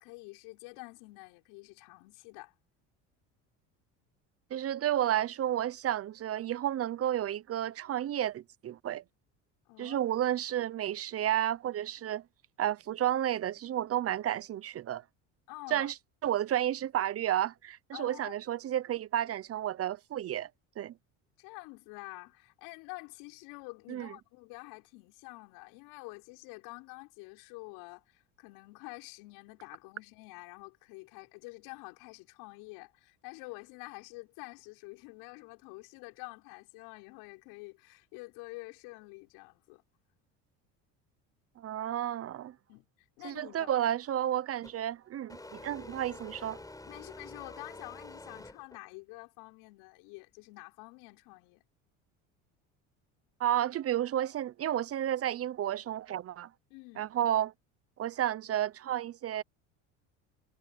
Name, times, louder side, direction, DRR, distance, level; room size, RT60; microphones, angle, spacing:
voice 1, 0.0-2.5 9.7-10.0 15.5-15.9 17.9-18.3 21.4-39.8 42.7-43.7 46.9-51.6 56.7-57.1, left 26 dB, 75° left, 6.2 m, -48 dB
voice 2, 4.5-9.0 9.8-12.2 12.6-15.0 15.7-15.9 16.2-20.5 20.8-20.9 23.9-24.1 41.6-42.5 43.2-46.6 53.4-56.5 57.0-57.5 58.0-59.4, right 11 dB, 40° right, 0.8 m, -31 dB
sound 1, 44.6-44.8 45.3-48.9, left 2 dB, 10° left, 6.5 m, -48 dB
supercardioid pair, 95°, 37 cm